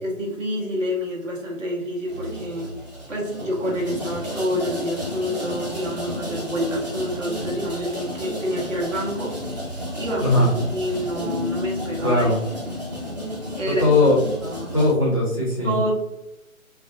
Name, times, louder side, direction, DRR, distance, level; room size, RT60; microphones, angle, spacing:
voice 1, 0.0-2.7 3.1-9.3 10.0-12.3 13.6-13.9 14.4-14.8 15.6-15.9, equal, 65° right, -3 dB, 1.1 m, -28 dB
sound 1, 2.1-14.9, left 1 dB, 30° right, 0.6 m, -32 dB
voice 2, 10.2-10.5 12.0-12.4 13.7-14.2 14.7-15.8, left 2 dB, 25° left, -5 dB, 0.4 m, -19 dB
2.6 x 2.1 x 2.6 m, 0.96 s
figure-of-eight pair, 140°, 42 cm